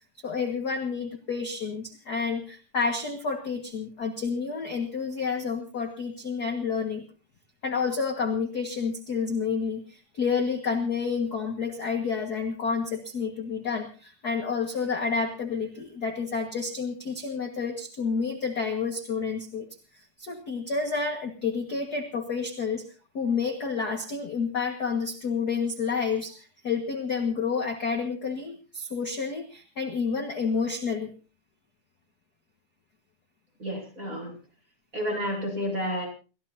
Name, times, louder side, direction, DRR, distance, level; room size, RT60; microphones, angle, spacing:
voice 1, 0.2-7.0 7.6-19.7 19.9-22.8 23.1-31.1, left 5 dB, 40° left, 4 dB, 1.8 m, -29 dB
voice 2, 33.6-34.3 34.9-36.1, equal, 25° right, 1 dB, 7.0 m, -30 dB
29.0 x 15.0 x 2.8 m, 0.35 s
omnidirectional pair, 3.4 m